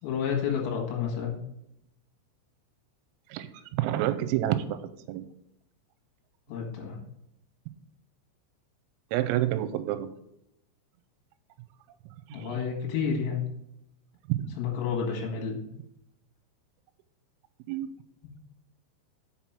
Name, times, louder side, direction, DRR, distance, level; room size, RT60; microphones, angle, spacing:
voice 1, 0.0-1.4 6.5-7.0 12.3-13.4 14.6-15.6, left 6 dB, 80° left, 0 dB, 4.2 m, -30 dB
voice 2, 3.3-4.8 5.1-5.3 9.1-10.1 12.3-12.5 14.3-14.6 17.7-17.9, right 13 dB, 90° right, 11 dB, 3.4 m, -28 dB
7.2 x 6.0 x 5.8 m, 0.79 s
omnidirectional pair, 5.9 m